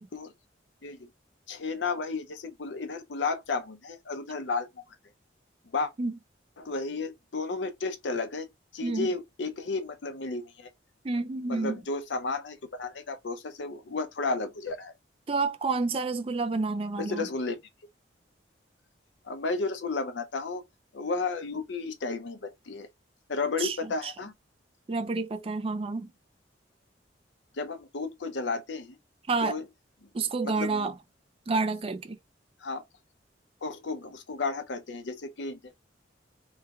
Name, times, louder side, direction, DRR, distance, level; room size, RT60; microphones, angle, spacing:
voice 1, 1.5-4.8 5.7-5.9 6.6-10.7 11.5-14.9 17.0-17.6 19.2-20.6 20.9-22.9 23.3-24.3 27.5-29.0 29.4-29.6 30.0-30.1 30.4-30.9 32.6-32.8 33.6-35.7, left 3 dB, 70° left, 0.6 m, -33 dB
voice 2, 11.0-11.8 15.3-17.3 23.6-23.8 24.0-24.1 24.9-26.1 29.3-29.6 30.1-30.9 31.5-32.2, right 3 dB, 30° right, 0.4 m, -29 dB
3.1 x 2.2 x 3.5 m
head